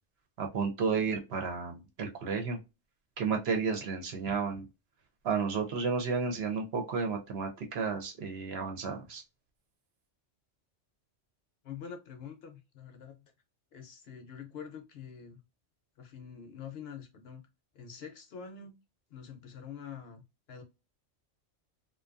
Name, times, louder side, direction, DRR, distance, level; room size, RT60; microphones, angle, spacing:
voice 1, 0.4-2.6 3.2-4.7 5.2-9.2, right 5 dB, 65° right, 0.8 m, -32 dB
voice 2, 11.6-13.3 13.7-15.4 16.0-17.4 17.7-18.7 19.1-20.2 20.5-20.6, left 7 dB, 65° left, 0.7 m, -46 dB
2.5 x 2.2 x 2.4 m
omnidirectional pair, 1.3 m